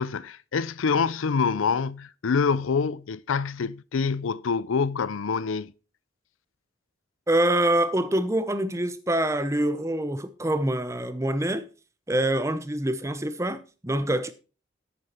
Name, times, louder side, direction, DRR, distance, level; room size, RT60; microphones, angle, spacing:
voice 1, 0.0-5.7, left 5 dB, 80° left, 0.5 m, -26 dB
voice 2, 7.3-11.7 12.1-14.3, right 1 dB, 15° right, 0.7 m, -25 dB
10.5 x 8.3 x 4.4 m
head